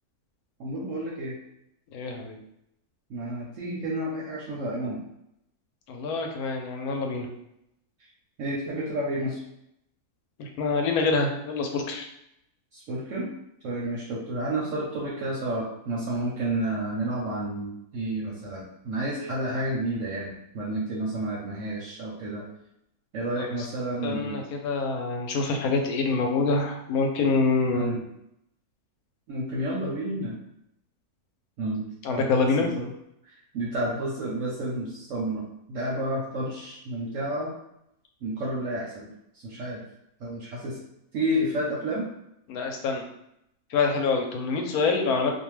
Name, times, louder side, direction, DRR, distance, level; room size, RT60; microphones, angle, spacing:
voice 1, 0.6-1.4 3.1-5.0 8.0-8.1 8.4-9.4 12.7-13.3 13.6-22.5 23.1-24.4 27.7-28.0 29.3-30.4 31.6-32.3 32.5-32.9 33.3-37.5 38.2-39.8 40.2-40.8 41.1-42.0, right 1 dB, 65° right, -4 dB, 0.8 m, -30 dB
voice 2, 1.9-2.4 5.9-7.3 10.4-12.0 24.0-28.0 32.0-32.7 42.5-43.0 43.7-45.3, left 4 dB, 75° left, 3 dB, 1.0 m, -26 dB
2.5 x 2.2 x 3.1 m, 0.78 s
omnidirectional pair, 1.7 m